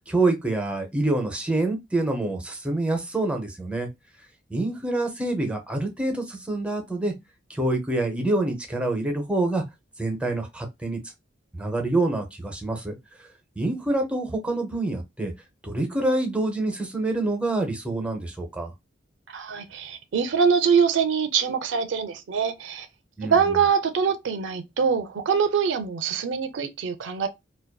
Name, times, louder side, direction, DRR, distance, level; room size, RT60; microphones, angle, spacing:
voice 1, 0.1-3.9 4.5-7.1 7.5-9.6 10.0-11.0 11.5-13.0 13.6-15.3 15.6-18.7 23.2-23.3, right 2 dB, 5° right, 0.5 m, -26 dB
voice 2, 19.3-22.9 23.2-27.3, right 6 dB, 75° right, 0.4 m, -24 dB
2.5 x 2.2 x 2.2 m
head